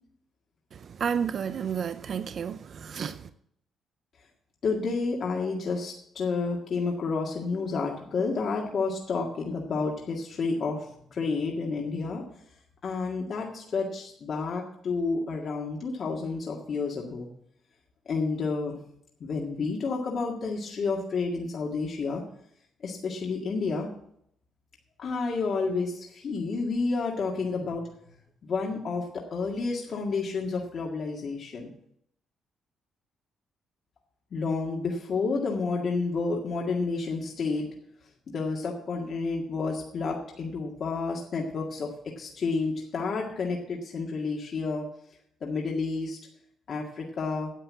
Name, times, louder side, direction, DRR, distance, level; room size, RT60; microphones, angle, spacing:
voice 1, 0.7-3.3, right 7 dB, 55° right, 0.5 m, -31 dB
voice 2, 4.6-12.2 12.8-17.3 18.1-18.8 19.2-22.2 22.8-23.9 25.0-27.8 28.4-31.7 34.3-37.7 38.3-41.9 42.2-44.9 45.4-46.2 46.7-47.5, left 4 dB, 55° left, 1.9 m, -30 dB
10.0 x 7.9 x 7.6 m
cardioid pair, 90°, 0 cm